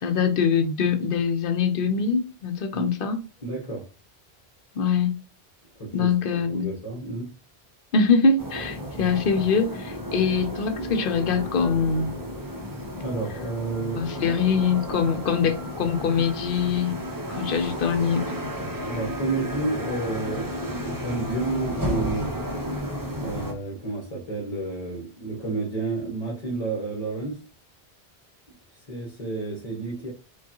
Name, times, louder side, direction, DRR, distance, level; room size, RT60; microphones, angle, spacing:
voice 1, 0.0-3.2 4.8-5.1 5.9-6.7 7.9-12.1 14.0-16.9 17.3-18.2, left 5 dB, 60° left, 0.8 m, -23 dB
voice 2, 3.4-3.9 5.8-6.1 6.5-7.3 13.0-14.3 18.8-22.3 23.2-27.4 28.7-30.1, right 3 dB, 40° left, 1.1 m, -31 dB
sound 1, 8.4-23.5, equal, 25° right, 0.6 m, -32 dB
4.8 x 2.3 x 2.9 m
omnidirectional pair, 1.1 m